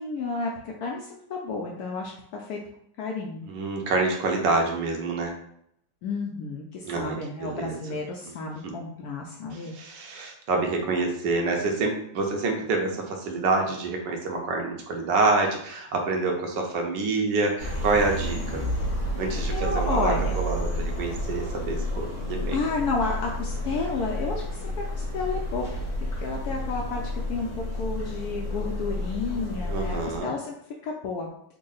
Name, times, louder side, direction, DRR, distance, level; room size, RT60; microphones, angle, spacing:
voice 1, 0.0-2.6 3.0-3.5 6.0-10.0 19.5-20.4 22.5-25.7 26.2-30.5 30.8-31.3, left 3 dB, 75° left, -1 dB, 0.9 m, -31 dB
voice 2, 3.4-5.3 6.8-7.8 8.6-8.7 9.7-18.7 19.1-22.6 29.7-30.3, right 3 dB, 75° right, 2 dB, 1.3 m, -27 dB
sound 1, 17.6-30.2, equal, 45° left, 1.0 m, -30 dB
3.6 x 2.0 x 3.8 m, 0.71 s
omnidirectional pair, 2.0 m